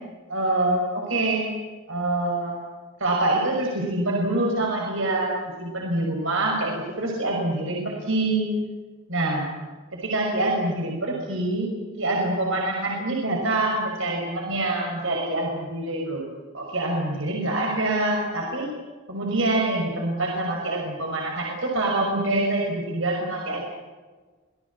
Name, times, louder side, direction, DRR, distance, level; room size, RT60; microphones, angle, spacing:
voice 1, 0.3-1.5 1.9-2.6 3.0-8.5 9.1-9.5 10.0-16.2 16.5-18.7 19.1-23.6, right 2 dB, 60° right, -1 dB, 5.7 m, -25 dB
27.0 x 19.0 x 8.6 m, 1.3 s
head